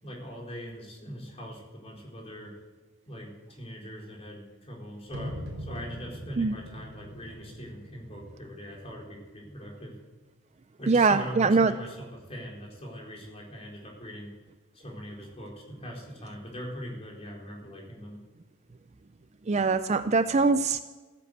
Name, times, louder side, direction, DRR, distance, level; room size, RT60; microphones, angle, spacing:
voice 1, 0.0-2.5 3.1-9.9 10.8-14.3 14.7-18.2, equal, 25° left, -2 dB, 4.3 m, -41 dB
sound 1, 5.1-9.1, equal, 60° right, 4.7 m, -42 dB
voice 2, 10.9-11.7 19.5-20.8, right 4 dB, 30° right, 11 dB, 0.4 m, -22 dB
16.0 x 10.0 x 7.9 m, 1.3 s
head